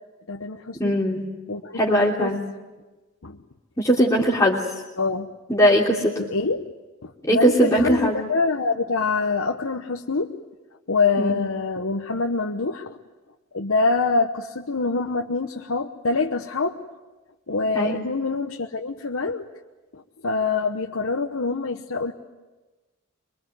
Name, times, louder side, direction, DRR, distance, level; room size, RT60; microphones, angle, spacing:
voice 1, 0.3-1.0 1.5-2.4 3.2-3.4 5.0-5.3 6.2-6.7 7.0-10.3 10.9-13.0 13.5-16.7 17.5-19.4 19.9-22.1, left 4 dB, 85° left, 3 dB, 1.1 m, -25 dB
voice 2, 0.8-1.3 1.7-2.4 3.8-4.6 5.5-6.1 7.2-8.2 11.2-11.4 17.7-18.0, equal, 15° left, -4 dB, 3.0 m, -20 dB
24.5 x 23.5 x 9.4 m, 1.2 s
head